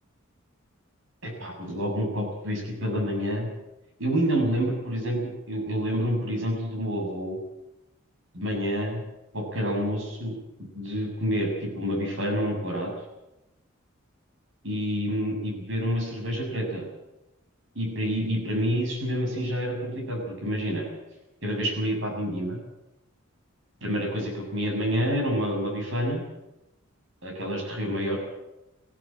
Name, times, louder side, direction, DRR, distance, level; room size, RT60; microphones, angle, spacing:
voice 1, 1.2-3.5 4.0-5.2 5.5-7.4 8.3-9.0 9.3-10.3 10.7-12.9 14.6-16.9 17.8-20.8 21.4-22.6 23.8-26.2 27.2-28.2, equal, 60° right, 2 dB, 7.1 m, -28 dB
19.5 x 15.0 x 8.8 m, 0.94 s
head